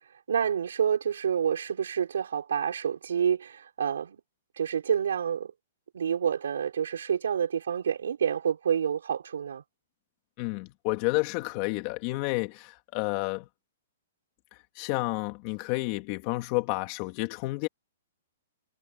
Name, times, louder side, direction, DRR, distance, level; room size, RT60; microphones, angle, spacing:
voice 1, 0.3-4.2 4.6-5.5 5.9-9.6, right 8 dB, 85° right, 4.6 m, -28 dB
voice 2, 10.4-13.5 14.8-17.7, left 23 dB, 30° left, 3.1 m, -30 dB
hypercardioid pair, 165°, 0 cm